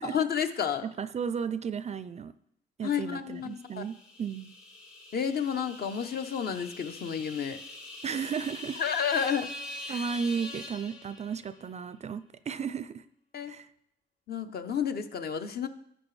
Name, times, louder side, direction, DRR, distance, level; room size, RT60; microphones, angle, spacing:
voice 1, 0.0-0.8 2.8-3.8 5.1-7.6 8.8-9.5 9.9-10.0 13.3-13.6 14.3-15.7, left 7 dB, 50° left, 8 dB, 0.7 m, -31 dB
voice 2, 1.0-2.3 2.8-4.5 8.0-8.8 9.1-9.3 9.9-13.0 13.5-13.7, right 6 dB, 35° right, 14 dB, 0.3 m, -34 dB
sound 1, 3.6-11.6, left 2 dB, 75° left, 2.1 m, -44 dB
10.5 x 6.9 x 3.2 m, 0.73 s
cardioid pair, 90°, 20 cm